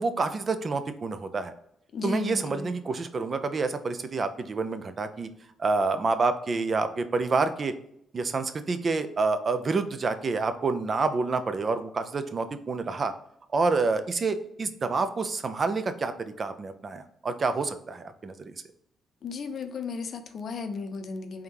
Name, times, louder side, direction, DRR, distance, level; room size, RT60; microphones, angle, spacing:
voice 1, 0.0-1.5 2.0-5.3 5.6-7.7 8.1-13.1 13.5-18.6, right 4 dB, 45° right, 10 dB, 0.5 m, -28 dB
voice 2, 1.9-2.7 19.2-21.4, left 4 dB, 60° left, 7 dB, 0.5 m, -35 dB
3.6 x 3.5 x 2.8 m, 0.73 s
supercardioid pair, 60°, 0 cm